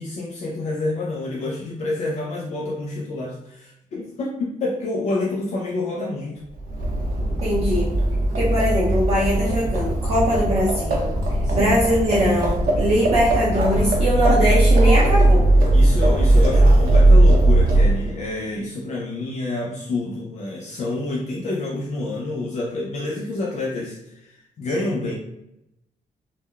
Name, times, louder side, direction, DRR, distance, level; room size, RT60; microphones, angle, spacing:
voice 1, 0.0-6.4 11.4-11.7 15.7-25.1, left 2 dB, 55° left, -3 dB, 0.4 m, -28 dB
Livestock farm animals working animals, 6.6-18.2, right 1 dB, 90° right, 0.7 m, -18 dB
voice 2, 7.4-7.9 8.3-11.1 11.5-15.5, equal, 45° right, -6 dB, 0.6 m, -21 dB
3.7 x 2.1 x 2.3 m, 0.85 s
wide cardioid pair, 165°, 14 cm